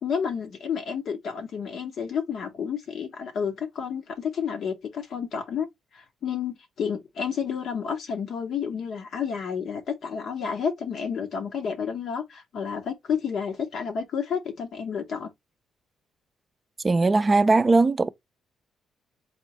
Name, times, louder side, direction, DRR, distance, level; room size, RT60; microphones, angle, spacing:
voice 1, 0.0-5.7 5.9-15.3, left 7 dB, 65° left, 0.7 m, -30 dB
voice 2, 16.8-18.1, right 3 dB, 25° right, 0.4 m, -19 dB
4.2 x 3.0 x 2.9 m
cardioid pair, 90°, 0 cm